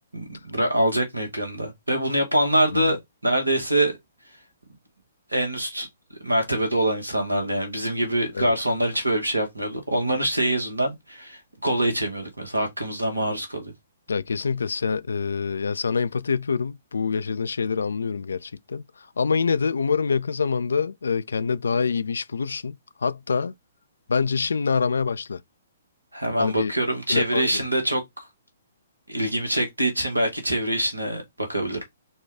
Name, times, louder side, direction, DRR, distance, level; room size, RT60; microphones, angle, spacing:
voice 1, 0.1-3.0 3.2-3.9 5.3-5.9 6.2-13.7 26.1-28.3 29.1-31.8, right 1 dB, 85° right, 1.2 m, -24 dB
voice 2, 14.1-23.5 24.1-25.4 26.4-26.7 27.1-27.7, left 5 dB, 70° left, 0.3 m, -26 dB
4.2 x 2.3 x 3.3 m
figure-of-eight pair, 125°, 0 cm